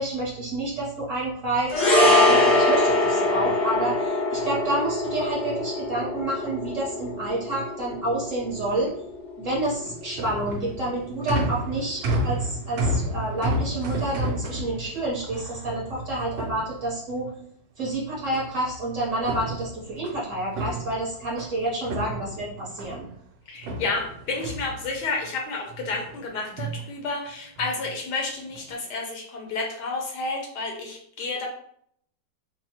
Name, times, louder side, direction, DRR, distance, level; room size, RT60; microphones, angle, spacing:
voice 1, 0.0-8.9 9.4-17.3 17.8-23.1, right 1 dB, 50° right, -5 dB, 1.3 m, -29 dB
sound 1, 1.7-10.2 10.4-10.6, left 1 dB, 90° left, 1.6 m, -23 dB
sound 2, 9.7-17.2 18.3-18.8 19.1-21.6 21.9-23.1 23.6-25.3 25.7-26.2 26.5-26.8 27.6-27.9 28.4-28.7, right 1 dB, 85° right, 1.4 m, -31 dB
voice 2, 23.5-31.5, left 3 dB, 70° left, 0 dB, 1.1 m, -31 dB
3.9 x 2.2 x 2.9 m, 0.66 s
omnidirectional pair, 2.0 m